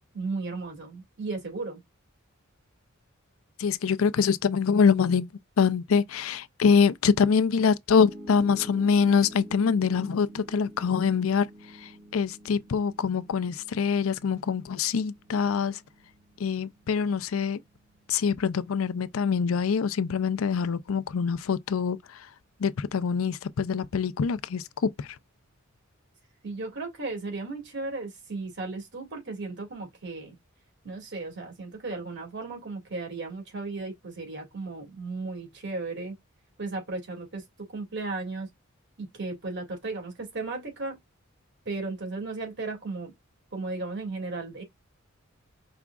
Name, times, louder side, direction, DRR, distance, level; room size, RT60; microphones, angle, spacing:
voice 1, 0.1-1.8 26.4-30.4 30.8-36.2 36.6-38.5 39.0-41.0 41.7-43.1 43.5-44.6, right 3 dB, 60° right, 2.2 m, -35 dB
voice 2, 3.6-5.3 5.6-15.8 16.4-17.6 18.1-22.3 22.6-25.2, left 6 dB, 75° left, 0.4 m, -25 dB
Piano, 8.0-20.2, right 1 dB, 85° right, 2.9 m, -49 dB
4.9 x 3.5 x 2.3 m
head